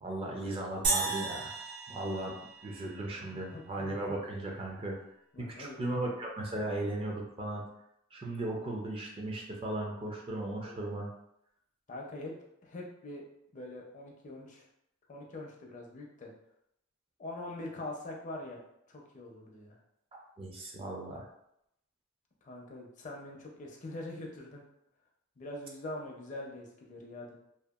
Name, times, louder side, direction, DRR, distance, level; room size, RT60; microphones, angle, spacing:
voice 1, 0.0-1.5 1.9-2.4 2.6-5.0 5.4-7.6 8.1-11.1 20.4-21.3, right 1 dB, 25° right, -1 dB, 0.4 m, -36 dB
sound 1, 0.8-3.3, right 4 dB, 60° right, 0.7 m, -34 dB
voice 2, 3.2-3.6 5.3-5.7 10.6-10.9 11.9-12.4 12.6-13.2 13.5-14.7 15.1-16.3 17.2-18.6 18.9-19.8 22.4-24.6 25.4-27.4, left 2 dB, 40° left, -1 dB, 0.5 m, -43 dB
2.7 x 2.2 x 2.3 m, 0.78 s
head